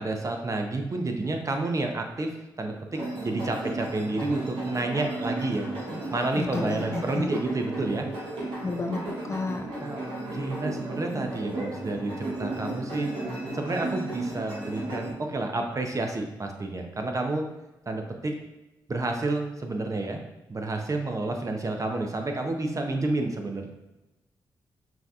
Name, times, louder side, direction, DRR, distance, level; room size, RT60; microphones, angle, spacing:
voice 1, 0.0-5.7 6.1-8.1 9.8-13.1 13.5-17.5 17.9-18.4 18.9-20.2 20.5-23.7, right 2 dB, 35° right, 3 dB, 0.7 m, -30 dB
sound 1, 2.9-15.1, right 2 dB, 80° right, 1.5 m, -34 dB
voice 2, 6.4-7.3 8.6-9.7, left 3 dB, 30° left, 5 dB, 0.4 m, -31 dB
5.7 x 2.7 x 2.4 m, 1.0 s
supercardioid pair, 45°, 9 cm